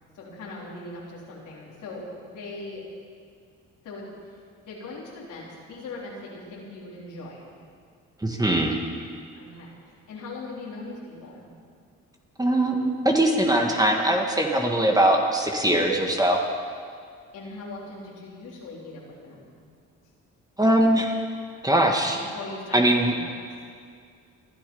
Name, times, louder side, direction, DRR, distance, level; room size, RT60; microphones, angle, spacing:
voice 1, 0.1-2.9 3.8-4.1 4.6-7.6 9.4-9.8 10.1-11.5 17.3-19.5 22.1-23.5, left 2 dB, 85° left, -5 dB, 4.0 m, -40 dB
voice 2, 8.2-8.8 12.4-16.4 20.6-21.1 21.6-22.2 22.7-23.1, right 1 dB, 10° right, 1 dB, 1.7 m, -21 dB
21.0 x 12.0 x 5.5 m, 2.1 s
cardioid pair, 90°, 30 cm